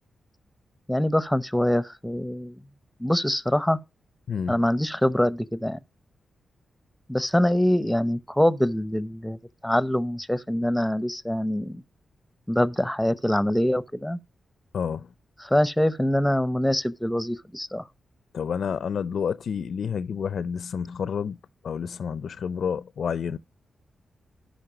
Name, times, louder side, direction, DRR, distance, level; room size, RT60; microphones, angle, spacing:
voice 1, 0.9-2.6 3.0-3.8 4.5-5.8 7.1-11.8 12.5-14.2 15.4-17.8, left 1 dB, 5° left, 0.7 m, -24 dB
voice 2, 4.3-4.6 14.7-15.1 18.3-21.4 21.6-23.4, left 7 dB, 75° left, 0.5 m, -29 dB
12.5 x 5.4 x 5.0 m
cardioid pair, 80°, 0 cm